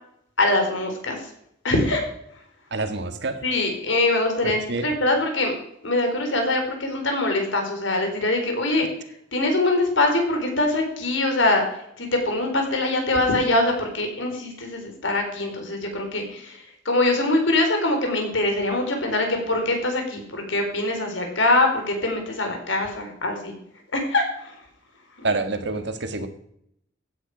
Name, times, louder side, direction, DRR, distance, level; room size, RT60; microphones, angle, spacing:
voice 1, 0.4-1.2 1.6-2.1 3.4-5.5 5.8-8.9 9.3-11.6 12.0-16.6 16.9-23.6 23.9-24.5 25.2-25.3, left 2 dB, 80° left, 3 dB, 4.4 m, -23 dB
voice 2, 2.7-3.4 4.4-4.9 25.2-26.3, right 3 dB, 65° right, 8 dB, 1.6 m, -27 dB
15.5 x 9.9 x 5.0 m, 0.72 s
head